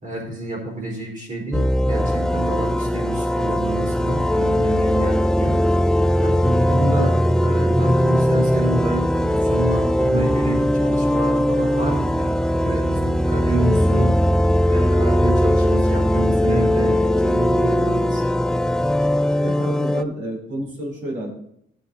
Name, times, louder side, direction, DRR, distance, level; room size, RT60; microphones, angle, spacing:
voice 1, 0.0-5.6 6.2-14.1 14.7-18.2, right 1 dB, 40° right, -1 dB, 4.2 m, -28 dB
sound 1, 1.5-20.0, equal, 5° left, 0.3 m, -19 dB
voice 2, 19.4-21.3, right 1 dB, 65° right, -2 dB, 3.1 m, -30 dB
13.5 x 7.5 x 2.8 m, 0.72 s
cardioid pair, 90°, 20 cm